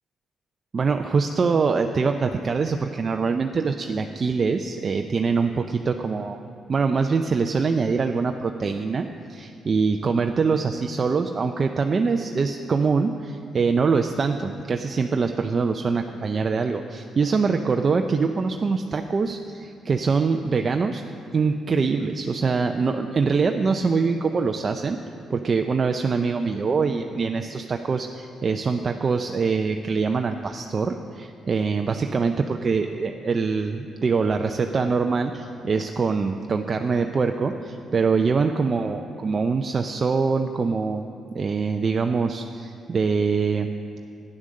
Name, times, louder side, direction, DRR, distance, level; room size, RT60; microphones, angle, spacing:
voice 1, 0.7-6.4 6.7-21.0 21.3-25.0 25.3-41.1 41.3-43.7, right 4 dB, 40° right, 5 dB, 0.5 m, -24 dB
11.0 x 9.9 x 6.4 m, 2.5 s
cardioid pair, 90°, 0 cm